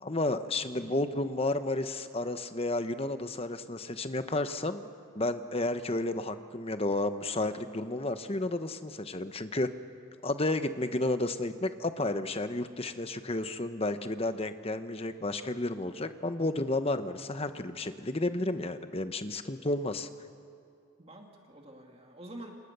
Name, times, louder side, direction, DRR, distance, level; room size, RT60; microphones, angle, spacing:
voice 1, 0.0-4.9 5.1-9.7 10.2-20.1, left 2 dB, 30° left, 10 dB, 1.0 m, -32 dB
voice 2, 0.7-1.2 21.0-22.5, right 1 dB, 30° right, 1 dB, 2.2 m, -48 dB
27.5 x 27.5 x 6.9 m, 2.4 s
head